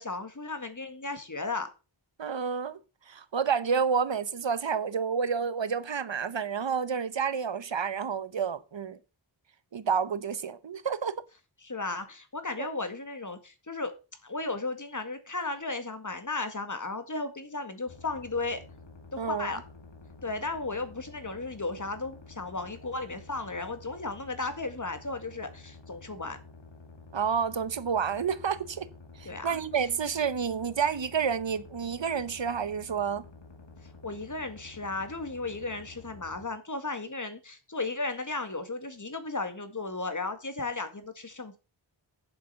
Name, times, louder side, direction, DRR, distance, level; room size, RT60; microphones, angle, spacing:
voice 1, 0.0-1.7 11.6-14.0 14.2-18.6 19.1-19.6 20.2-26.4 29.3-29.6 34.0-41.6, left 3 dB, 40° left, 1.9 m, -35 dB
voice 2, 2.2-2.8 3.1-9.0 9.7-11.2 12.6-12.7 19.2-19.5 27.1-28.9 29.2-33.2, right 6 dB, 65° right, 1.0 m, -29 dB
sound 1, 17.9-36.5, left 3 dB, 65° left, 2.1 m, -50 dB
7.9 x 7.6 x 6.8 m
wide cardioid pair, 60°, 47 cm